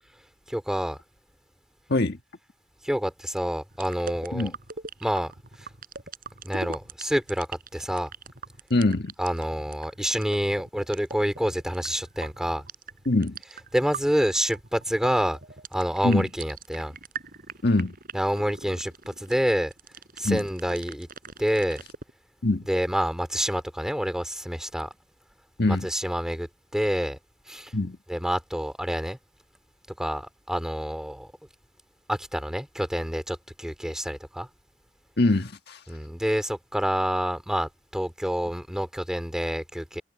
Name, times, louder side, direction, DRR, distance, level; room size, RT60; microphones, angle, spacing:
voice 1, 0.5-1.0 2.8-4.5 5.0-5.3 6.4-8.1 9.2-12.6 13.7-15.4 15.7-16.9 18.1-19.7 20.2-21.1 21.4-21.8 22.7-24.9 25.7-27.2 27.5-27.7 28.1-29.2 30.0-31.3 32.1-34.5 35.9-40.0, equal, 5° right, 2.7 m, -28 dB
sound 1, 3.7-22.1, right 5 dB, 50° right, 4.4 m, -42 dB
voice 2, 8.7-9.1 13.0-13.4 16.0-16.3 17.6-17.9 20.2-20.5 22.4-22.7 25.6-25.9 27.7-28.0 35.2-35.8, left 2 dB, 60° left, 1.6 m, -23 dB
head